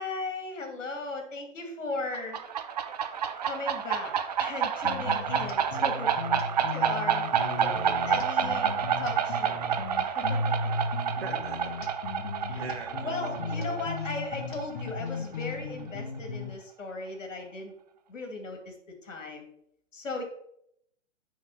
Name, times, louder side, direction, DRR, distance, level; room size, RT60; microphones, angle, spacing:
voice 1, 0.0-2.4 3.4-6.1 6.4-7.3 8.1-9.7 10.1-10.6 12.5-12.6 13.0-17.7 18.1-18.8 19.0-19.5 19.9-20.2, left 3 dB, 80° left, 3 dB, 2.4 m, -37 dB
sound 1, 2.1-15.5, right 8 dB, 35° right, 0.5 m, -29 dB
sound 2, 4.8-16.5, left 3 dB, 40° left, 0.9 m, -36 dB
voice 2, 5.4-6.0 7.4-8.0 10.7-10.8 11.2-11.7 12.5-13.8, right 4 dB, 55° right, 3 dB, 2.0 m, -42 dB
6.4 x 5.9 x 5.4 m, 0.72 s
hypercardioid pair, 155°, 38 cm